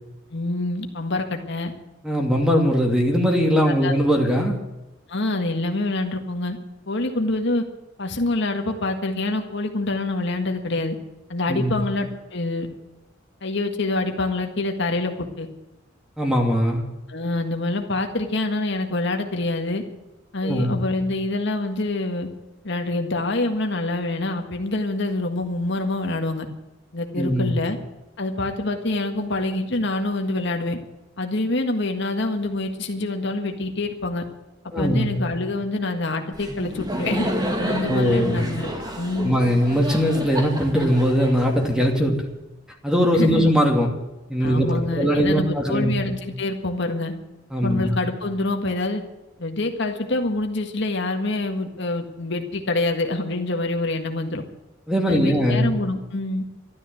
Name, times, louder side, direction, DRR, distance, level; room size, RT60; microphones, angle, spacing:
voice 1, 0.3-1.7 3.7-3.9 5.1-6.6 6.9-7.6 8.0-11.0 11.3-12.7 13.4-15.5 17.1-19.8 20.3-22.3 22.6-26.5 26.9-27.8 28.2-30.8 31.2-34.2 34.8-37.3 37.7-38.7 39.0-39.4 43.1-43.5 44.4-47.1 47.6-49.0 49.4-54.4 55.1-56.4, left 2 dB, 60° left, 4 dB, 1.8 m, -26 dB
voice 2, 2.0-4.6 11.5-11.8 16.2-16.8 20.4-20.8 27.2-27.5 34.7-35.1 37.9-38.4 39.2-42.2 42.8-43.9 44.3-45.9 47.5-47.9 54.9-55.7, equal, 5° right, 1 dB, 2.6 m, -20 dB
Laughter, 36.3-42.2, equal, 20° right, 2.2 m, -30 dB
13.0 x 13.0 x 7.9 m, 1.0 s
head